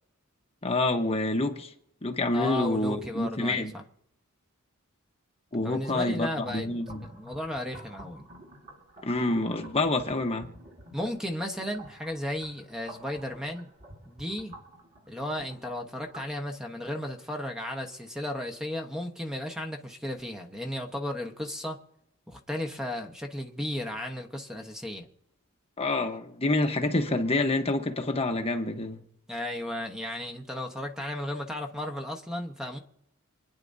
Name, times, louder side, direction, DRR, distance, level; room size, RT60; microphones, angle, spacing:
voice 1, 0.6-1.7 2.0-3.7 5.5-7.0 9.0-10.5 25.8-29.0, left 2 dB, 30° left, 1.1 m, -27 dB
voice 2, 2.3-3.8 5.6-6.7 7.0-8.3 10.9-13.7 14.1-14.5 15.1-21.8 22.3-25.1 29.3-32.8, left 1 dB, 5° right, 1.1 m, -34 dB
sound 1, 6.7-16.3, right 1 dB, 35° right, 4.3 m, -49 dB
27.5 x 9.9 x 2.7 m
head